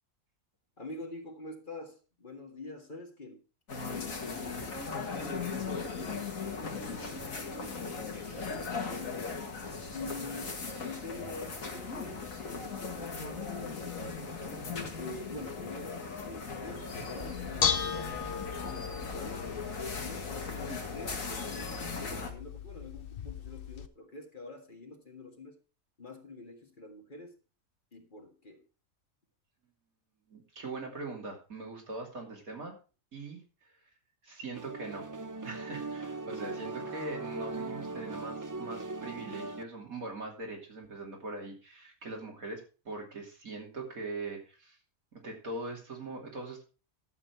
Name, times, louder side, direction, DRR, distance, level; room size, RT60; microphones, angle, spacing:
voice 1, 0.8-3.4 3.8-9.2 9.9-10.5 10.8-14.4 15.0-19.5 20.0-25.6 26.0-27.4 27.9-28.6, left 3 dB, 35° left, 3 dB, 2.0 m, -46 dB
sound 1, 3.7-22.3, left 4 dB, 70° left, 2.2 m, -38 dB
Bell / Dishes pots and pans, 17.2-23.9, left 8 dB, 50° left, 0.8 m, -36 dB
voice 2, 30.3-32.8 33.1-33.7 34.2-35.1 35.4-44.8 45.1-46.6, right 2 dB, 80° right, 0 dB, 3.3 m, -41 dB
sound 2, 34.5-39.6, right 3 dB, 30° right, 0.3 m, -39 dB
12.0 x 7.8 x 4.6 m, 0.34 s
omnidirectional pair, 1.5 m